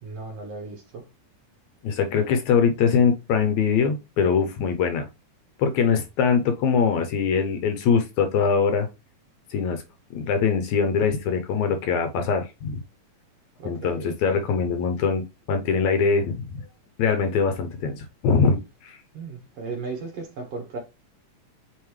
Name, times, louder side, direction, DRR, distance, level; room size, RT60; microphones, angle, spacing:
voice 1, 0.0-1.0 13.6-14.5 19.1-20.8, right 4 dB, 55° right, 2.2 m, -36 dB
voice 2, 1.8-5.1 5.6-8.9 9.5-9.8 10.1-12.8 13.7-15.2 15.5-16.6 17.0-19.0, left 6 dB, 70° left, 1.9 m, -22 dB
8.2 x 3.9 x 3.2 m
omnidirectional pair, 3.8 m